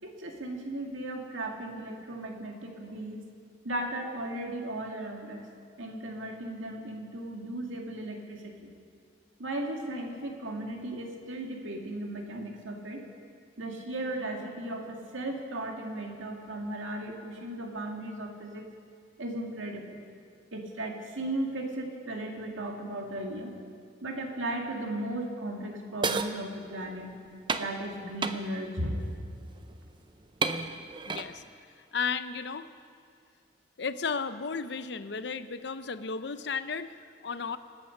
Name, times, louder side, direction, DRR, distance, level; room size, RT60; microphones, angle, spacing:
voice 1, 0.0-3.2 3.6-5.5 5.8-8.7 9.4-13.0 13.6-18.7 19.2-20.0 20.5-23.5 24.0-27.1 27.6-29.1, right 1 dB, 75° right, 1 dB, 2.2 m, -36 dB
sound 1, 26.0-26.3 27.5-27.7 28.2-28.4 29.6-29.7 30.4-31.3, right 4 dB, 25° right, 0.5 m, -30 dB
voice 2, 31.1-31.4 31.7-32.7 33.8-37.6, left 5 dB, 55° left, 12 dB, 0.6 m, -34 dB
24.5 x 9.0 x 6.5 m, 2.3 s
head